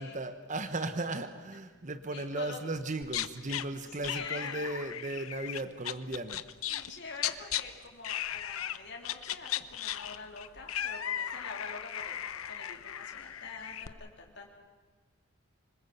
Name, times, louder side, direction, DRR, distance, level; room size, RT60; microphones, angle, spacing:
voice 1, 0.0-6.4, right 2 dB, 35° right, 10 dB, 1.0 m, -36 dB
voice 2, 2.1-2.6 3.8-4.8 6.7-12.2 12.5-14.5, left 4 dB, 55° left, 1 dB, 3.6 m, -46 dB
sound 1, 3.0-3.6 4.0-7.6 8.0-8.8 9.0-13.9, left 11 dB, 85° left, 0.9 m, -36 dB
26.0 x 20.5 x 8.0 m, 1.4 s
head